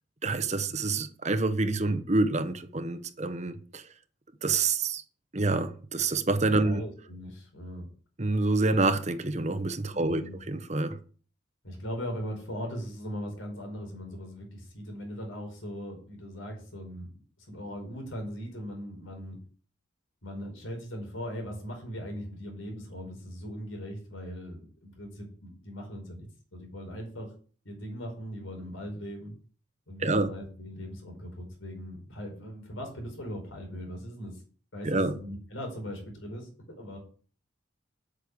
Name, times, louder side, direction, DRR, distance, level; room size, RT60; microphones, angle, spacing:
voice 1, 0.2-3.8 4.4-5.0 5.3-6.8 8.2-10.2 10.5-11.0 30.0-30.3 34.8-35.1, right 3 dB, 35° right, 1.0 m, -27 dB
voice 2, 6.6-7.8 9.9-10.4 11.6-17.1 17.4-19.4 20.2-26.3 26.5-27.3 27.6-29.3 29.9-34.4 34.7-36.5 36.8-37.0, equal, 90° left, 4.8 m, -39 dB
8.4 x 6.7 x 8.0 m
head